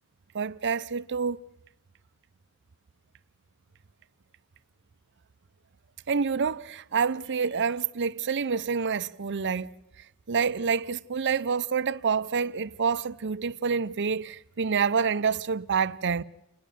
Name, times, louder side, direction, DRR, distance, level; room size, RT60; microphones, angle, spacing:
voice 1, 0.3-1.4 6.1-9.7 10.3-16.2, right 5 dB, 55° right, 0.6 m, -27 dB
29.5 x 10.5 x 9.0 m
head